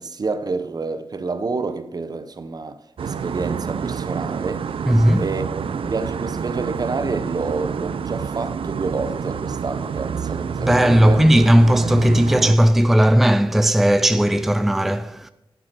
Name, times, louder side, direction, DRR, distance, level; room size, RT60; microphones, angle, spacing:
voice 1, 0.0-4.7 5.2-11.2, right 4 dB, 45° right, 0.9 m, -28 dB
sound 1, 3.0-12.6, right 6 dB, 85° right, 0.5 m, -28 dB
voice 2, 4.9-5.3 10.6-15.3, equal, 5° right, 0.4 m, -16 dB
10.5 x 9.4 x 6.1 m
wide cardioid pair, 115°, 9 cm